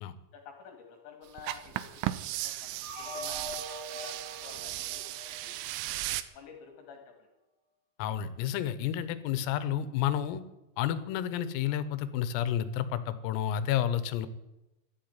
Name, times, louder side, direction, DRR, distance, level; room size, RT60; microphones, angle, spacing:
voice 1, 0.3-2.7 3.0-4.2 4.4-5.6 6.3-7.3 9.3-9.5, left 6 dB, 65° left, 3 dB, 4.0 m, -51 dB
sound 1, 1.4-6.2, right 15 dB, 80° right, 2.7 m, -36 dB
sound 2, 2.8-5.9, equal, 20° right, 0.8 m, -44 dB
Keyboard (musical), 3.6-5.6, right 9 dB, 55° right, 5.7 m, -50 dB
voice 2, 8.0-10.4 10.8-14.3, left 10 dB, 85° left, 14 dB, 3.7 m, -30 dB
13.0 x 11.5 x 9.6 m, 0.98 s
omnidirectional pair, 5.9 m